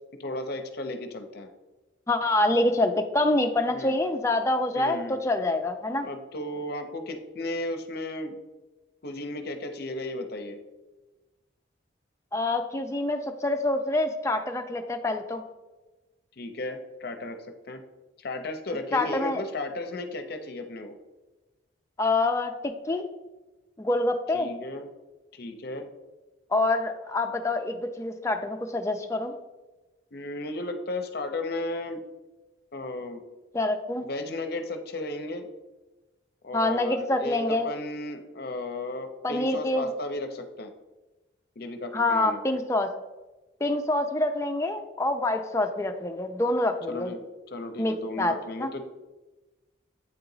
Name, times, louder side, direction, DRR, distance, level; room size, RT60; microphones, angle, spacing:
voice 1, 0.2-1.5 3.7-3.9 4.7-5.2 6.0-8.4 9.0-10.6 16.4-17.4 17.7-17.8 18.2-21.0 24.3-24.9 25.3-25.9 30.1-32.0 32.7-33.2 34.0-35.5 36.4-40.7 41.6-42.4 46.9-47.2 47.5-48.8, left 2 dB, 55° left, 6 dB, 0.6 m, -34 dB
voice 2, 2.1-6.1 12.3-15.4 18.9-19.4 22.0-23.1 23.8-24.5 26.5-29.3 33.5-34.0 36.5-37.7 39.2-39.9 41.9-42.9 43.6-47.1 47.8-48.3 48.6-48.7, left 2 dB, 15° left, 5 dB, 0.3 m, -26 dB
8.4 x 2.9 x 3.9 m, 1.1 s
head